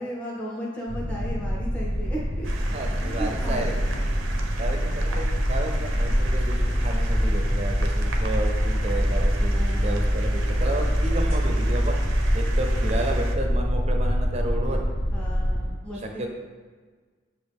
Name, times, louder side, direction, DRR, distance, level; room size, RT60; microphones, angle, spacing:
voice 1, 0.0-2.5 3.0-4.0 9.6-10.1 15.1-16.3, equal, 5° left, -5 dB, 0.6 m, -35 dB
sound 1, 0.9-15.7, equal, 80° left, 0.9 m, -24 dB
sound 2, 2.4-13.4, right 3 dB, 85° right, 0.5 m, -39 dB
voice 2, 2.7-3.8 4.6-14.8 15.9-16.3, right 2 dB, 35° right, 3 dB, 0.5 m, -32 dB
6.3 x 2.4 x 3.4 m, 1.5 s
head